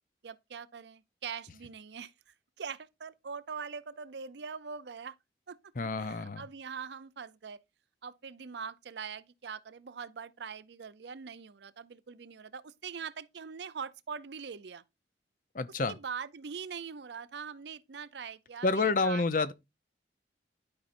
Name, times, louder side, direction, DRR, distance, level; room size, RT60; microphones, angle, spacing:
voice 1, 0.2-5.1 5.5-5.6 6.0-7.6 8.0-14.8 15.9-19.5, right 6 dB, 70° right, 0.5 m, -42 dB
voice 2, 5.8-6.5 15.5-16.0 18.6-19.5, left 3 dB, 45° left, 0.6 m, -29 dB
12.0 x 5.5 x 2.6 m
head